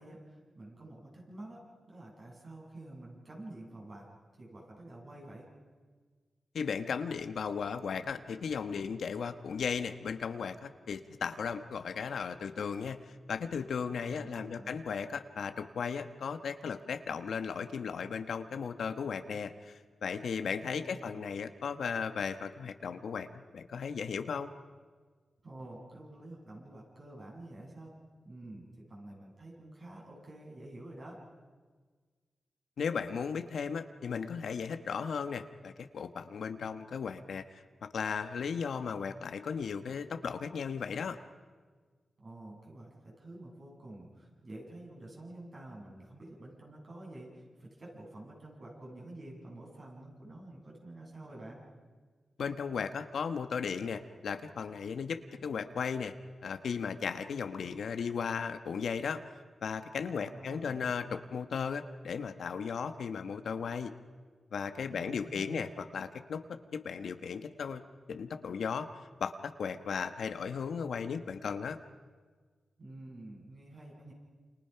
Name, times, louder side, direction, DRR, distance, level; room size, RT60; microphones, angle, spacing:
voice 1, 0.0-4.1 4.4-5.5 13.9-14.9 20.7-21.3 25.4-27.9 28.2-31.2 42.2-51.6 60.1-61.0 64.9-65.8 72.8-74.1, right 1 dB, 45° right, -2 dB, 7.6 m, -49 dB
voice 2, 6.5-13.0 13.3-24.5 32.8-41.2 52.4-56.1 56.4-59.2 59.6-63.9 64.5-67.8 68.1-68.9 69.2-71.8, left 6 dB, 80° left, 8 dB, 1.2 m, -36 dB
28.5 x 28.5 x 5.9 m, 1.5 s
wide cardioid pair, 120°, 0 cm